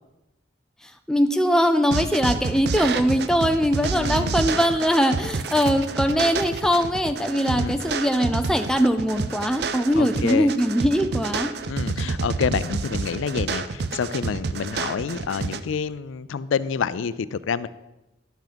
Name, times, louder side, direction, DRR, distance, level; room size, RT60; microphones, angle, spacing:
voice 1, 1.1-11.5, equal, 5° left, 7 dB, 0.5 m, -21 dB
sound 1, 1.9-15.6, right 4 dB, 55° right, 0.5 m, -28 dB
voice 2, 3.9-4.3 7.5-7.8 10.0-10.5 11.7-17.7, left 6 dB, 90° left, 16 dB, 0.4 m, -28 dB
11.5 x 5.9 x 5.2 m, 0.99 s
head